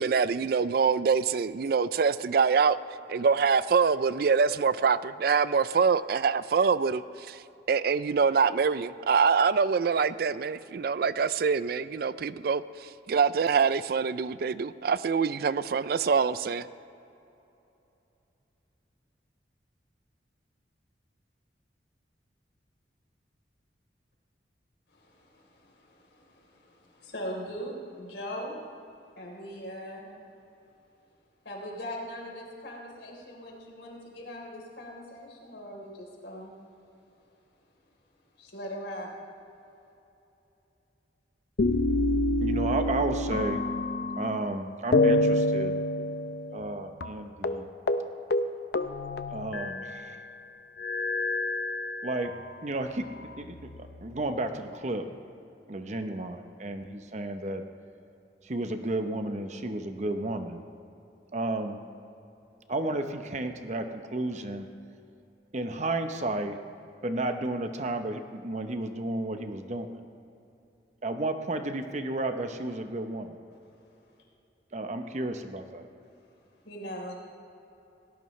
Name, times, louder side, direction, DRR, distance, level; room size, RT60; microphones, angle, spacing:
voice 1, 0.0-2.8 3.1-7.0 7.3-7.4 7.7-16.7, right 5 dB, 55° right, 0.4 m, -25 dB
voice 2, 24.9-28.6 29.2-30.1 31.4-36.5 38.4-39.2 76.6-77.1, equal, 75° left, 3.7 m, -40 dB
sound 1, 41.6-44.5 44.9-46.7 47.0-47.1 47.4-47.6 47.9-48.0 48.3-50.0 50.8-52.4 53.1-54.0, left 2 dB, 60° left, 0.6 m, -27 dB
voice 3, 42.4-43.7 44.2-45.7 46.5-47.7 49.3-50.2 52.0-52.4 52.6-55.1 55.7-57.6 58.4-60.6 61.3-61.8 62.7-64.7 65.5-66.6 67.0-69.9 71.0-73.3 74.7-75.8, right 2 dB, 40° right, 0.8 m, -32 dB
18.0 x 18.0 x 3.2 m
head